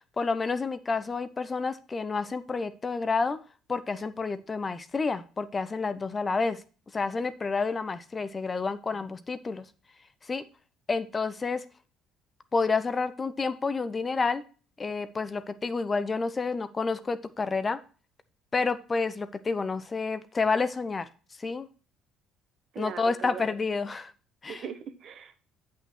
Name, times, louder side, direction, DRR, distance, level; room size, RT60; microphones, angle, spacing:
voice 1, 0.2-3.4 3.7-6.6 6.9-9.6 10.2-10.4 10.9-11.6 12.5-14.4 14.8-17.8 18.5-21.1 21.4-21.7 22.8-24.1 24.4-24.7, left 4 dB, 30° left, 13 dB, 0.8 m, -29 dB
voice 2, 22.7-23.4 24.5-25.5, right 7 dB, 55° right, 8 dB, 1.3 m, -39 dB
8.8 x 5.7 x 4.3 m, 0.37 s
hypercardioid pair, 60°, 0 cm